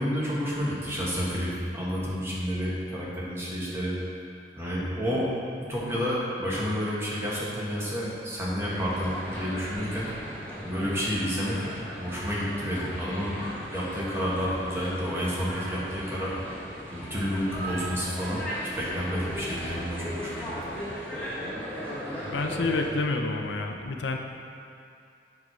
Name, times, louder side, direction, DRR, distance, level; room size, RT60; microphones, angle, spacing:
voice 1, 0.0-4.0 4.6-5.3 5.6-10.1 10.6-11.7 12.0-13.4 13.7-16.3 16.9-20.5, equal, 15° right, -7 dB, 1.5 m, -30 dB
sound 1, 8.6-22.9, equal, 10° left, 1.4 m, -37 dB
voice 2, 22.3-24.2, left 3 dB, 90° left, 4 dB, 0.6 m, -28 dB
7.4 x 4.7 x 6.1 m, 2.5 s
head